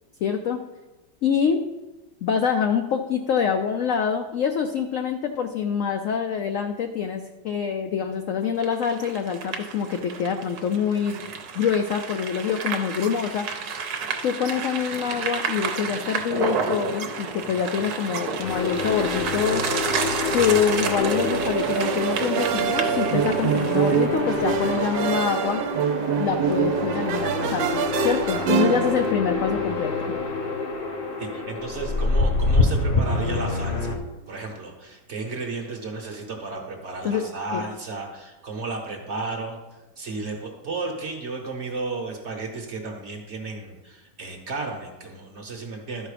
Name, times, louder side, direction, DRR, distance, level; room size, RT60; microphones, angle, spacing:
voice 1, 0.2-0.6 1.2-1.6 2.2-11.2 11.5-13.5 14.2-19.6 20.3-25.6 26.2-30.1 37.0-37.6, left 7 dB, 70° left, 6 dB, 0.7 m, -25 dB
sound 1, 8.6-24.1, right 5 dB, 65° right, 1.3 m, -31 dB
sound 2, 18.4-34.0, left 3 dB, 40° left, 0.9 m, -27 dB
sound 3, 20.8-29.1, right 8 dB, 85° right, 1.3 m, -25 dB
voice 2, 31.2-34.0 34.3-39.6 40.0-46.1, right 3 dB, 45° right, 2 dB, 1.2 m, -33 dB
12.0 x 4.7 x 4.9 m, 1.1 s
omnidirectional pair, 1.9 m